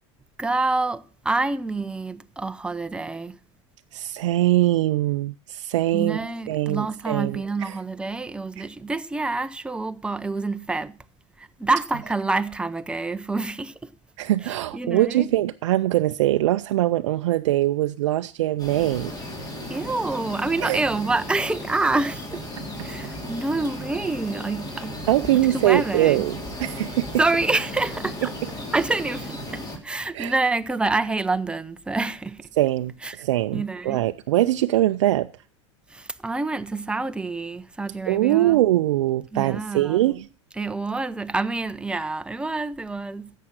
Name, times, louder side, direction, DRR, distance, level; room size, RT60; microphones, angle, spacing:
voice 1, 0.4-3.4 5.9-11.0 11.4-13.9 14.4-15.3 19.7-22.5 22.8-25.0 25.3-26.2 27.2-28.3 28.7-32.4 33.0-33.2 33.5-34.0 35.9-38.6 39.3-40.0 40.6-43.3, right 3 dB, 5° right, 0.6 m, -27 dB
voice 2, 3.9-6.2 6.5-7.8 8.6-8.7 14.2-19.1 20.6-20.8 22.8-22.9 25.1-27.2 30.1-30.3 32.5-35.3 38.1-40.3, right 15 dB, 75° right, 0.4 m, -22 dB
sound 1, 18.6-29.8, left 1 dB, 25° left, 3.1 m, -35 dB
11.0 x 7.5 x 6.4 m
hypercardioid pair, 95°, 15 cm